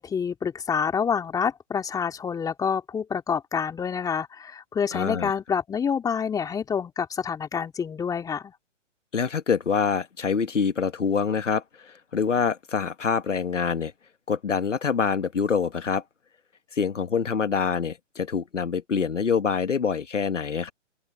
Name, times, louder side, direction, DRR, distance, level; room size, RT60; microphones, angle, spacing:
voice 1, 0.0-8.5, left 6 dB, 10° left, 2.6 m, -27 dB
voice 2, 4.9-5.3 9.1-13.9 14.3-16.0 16.7-20.7, left 6 dB, 75° left, 1.5 m, -25 dB
open air
figure-of-eight pair, 135°, 37 cm